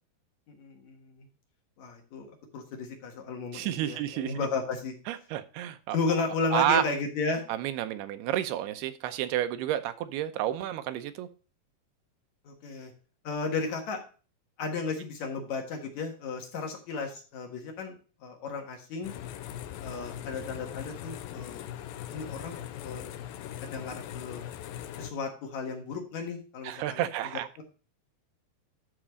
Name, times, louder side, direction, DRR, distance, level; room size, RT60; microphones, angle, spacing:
voice 1, 0.5-1.3 1.8-4.9 5.9-7.4 12.4-12.9 13.2-14.0 14.6-19.1 19.8-21.7 22.1-23.1 23.6-24.4 25.0-27.0 27.6-27.7, left 4 dB, 55° left, 3 dB, 2.5 m, -34 dB
voice 2, 3.5-4.5 5.1-6.0 6.5-6.8 7.5-11.3 26.6-27.5, right 13 dB, 85° right, 10 dB, 2.7 m, -30 dB
sound 1, 19.0-25.1, left 11 dB, 80° left, 2.2 m, -40 dB
12.0 x 4.2 x 5.0 m, 0.37 s
omnidirectional pair, 4.5 m